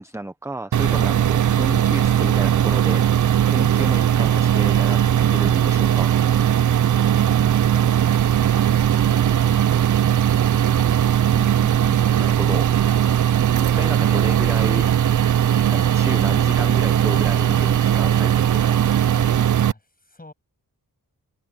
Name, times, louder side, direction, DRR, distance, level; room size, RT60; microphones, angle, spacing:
voice 1, 0.0-3.1 3.5-6.2 11.3-12.7 13.6-14.9 15.7-18.9, right 1 dB, 5° right, 1.0 m, -32 dB
sound 1, 0.7-19.7, right 10 dB, 50° right, 0.5 m, -18 dB
voice 2, 19.1-20.3, left 2 dB, 20° left, 7.4 m, -47 dB
wide cardioid pair, 75°, 39 cm